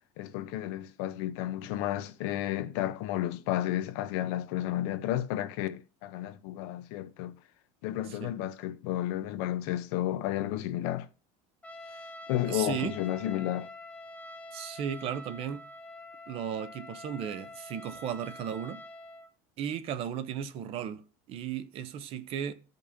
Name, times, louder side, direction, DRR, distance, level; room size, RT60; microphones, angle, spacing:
voice 1, 0.2-7.4 7.8-11.1 12.3-13.7, left 13 dB, 70° left, 0.7 m, -32 dB
Trumpet, 11.6-19.3, left 1 dB, 10° left, 0.6 m, -46 dB
voice 2, 12.5-13.0 14.5-15.6 16.3-18.8 19.6-22.5, right 8 dB, 40° right, 0.7 m, -35 dB
15.5 x 5.3 x 2.7 m
cardioid pair, 160°, 14 cm